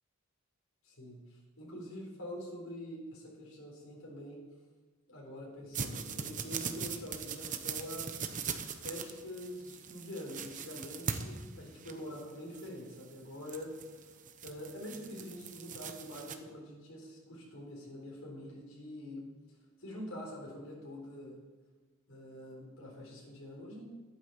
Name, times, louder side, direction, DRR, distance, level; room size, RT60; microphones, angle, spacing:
voice 1, 0.8-4.4 5.1-8.1 8.7-13.7 14.4-19.2 19.8-21.4 22.1-23.8, equal, 85° left, -3 dB, 4.0 m, -45 dB
sound 1, 5.7-16.3, right 6 dB, 40° right, 0.9 m, -41 dB
11.0 x 9.3 x 7.0 m, 1.3 s
head